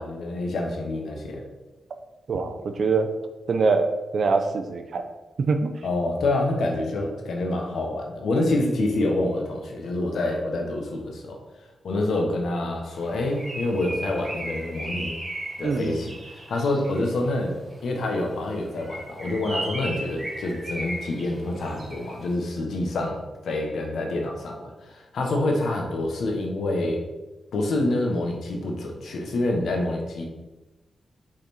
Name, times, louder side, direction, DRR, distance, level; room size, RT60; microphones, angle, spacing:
voice 1, 0.0-1.4 5.8-11.4 11.8-15.1 15.6-17.6 17.8-27.0 27.5-30.2, left 2 dB, 80° left, 1 dB, 1.2 m, -27 dB
voice 2, 2.3-3.1 3.5-3.9 4.1-5.0 5.5-5.7 15.6-16.0, right 4 dB, 65° right, 7 dB, 0.6 m, -23 dB
Bird, 13.0-17.1 18.7-22.2, right 1 dB, 30° right, 2.0 m, -36 dB
6.2 x 4.2 x 4.3 m, 1.1 s
cardioid pair, 75°, 0 cm